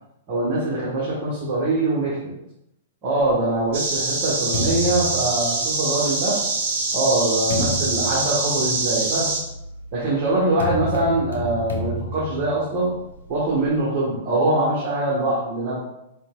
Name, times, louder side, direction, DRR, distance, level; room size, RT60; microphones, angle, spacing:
voice 1, 0.3-2.3 3.0-6.4 6.9-9.3 9.9-12.9 13.3-15.8, right 2 dB, 45° right, -7 dB, 1.3 m, -23 dB
sound 1, 3.2-6.0 6.7-13.8, equal, 85° left, 0.7 m, -32 dB
sound 2, 3.7-9.4, right 3 dB, 60° right, 0.9 m, -24 dB
4.6 x 2.9 x 2.3 m, 0.84 s
hypercardioid pair, 115°, 0 cm